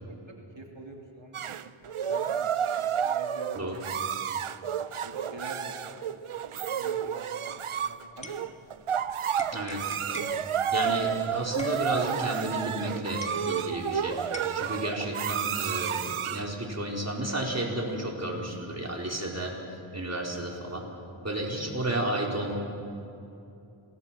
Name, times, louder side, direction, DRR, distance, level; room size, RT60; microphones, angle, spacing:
voice 1, 0.1-4.0 4.3-4.5 5.0-8.8 14.7-15.0 20.2-20.5 21.6-21.8, right 2 dB, 65° right, 1 dB, 2.9 m, -47 dB
sound 1, 1.3-16.5, right 8 dB, 85° right, 0.7 m, -31 dB
sound 2, 7.7-9.0 9.4-14.0 14.3-15.4, left 1 dB, 15° left, 2.2 m, -46 dB
voice 2, 9.5-10.2 10.7-14.2 14.5-20.8 21.2-22.5, right 1 dB, 30° right, -1 dB, 4.3 m, -32 dB
27.0 x 19.5 x 7.5 m, 2.7 s
wide cardioid pair, 65°, 48 cm